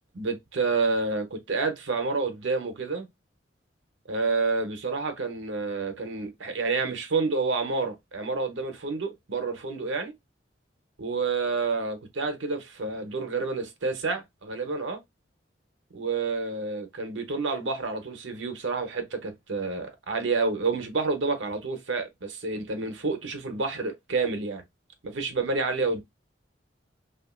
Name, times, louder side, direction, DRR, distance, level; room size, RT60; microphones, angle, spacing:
voice 1, 0.1-3.1 4.1-10.1 11.0-15.0 15.9-24.6 25.0-26.0, right 4 dB, 85° right, 0.8 m, -29 dB
3.0 x 2.4 x 2.3 m
head